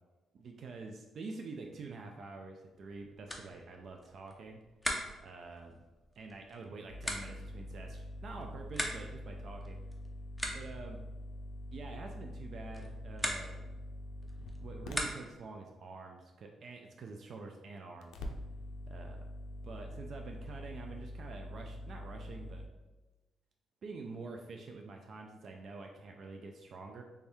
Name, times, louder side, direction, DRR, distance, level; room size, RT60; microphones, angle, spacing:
voice 1, 0.3-4.6 5.2-5.8 6.2-9.8 10.5-11.0 11.7-13.8 14.6-18.3 18.9-19.2 19.6-22.7 23.8-27.0, right 3 dB, 60° right, 2 dB, 0.4 m, -47 dB
sound 1, 2.7-15.5, equal, 5° left, 0.6 m, -43 dB
sound 2, 6.9-15.1 18.0-22.7, left 1 dB, 85° left, 0.4 m, -45 dB
3.4 x 2.6 x 3.4 m, 1.2 s
cardioid pair, 95°, 0 cm